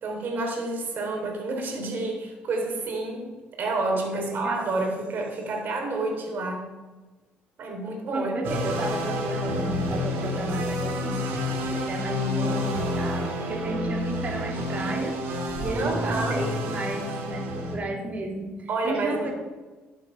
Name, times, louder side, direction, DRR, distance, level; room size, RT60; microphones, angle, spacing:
voice 1, 0.0-3.3 3.6-6.7 7.6-8.3 15.7-16.5 18.7-19.3, right 2 dB, 55° right, 2 dB, 3.0 m, -29 dB
voice 2, 4.1-4.8 8.1-15.2 15.6-19.3, right 2 dB, 35° right, 2 dB, 2.4 m, -33 dB
sound 1, 8.4-17.8, left 1 dB, 75° right, 3.7 m, -29 dB
12.0 x 7.2 x 5.5 m, 1.2 s
cardioid pair, 115°, 4 cm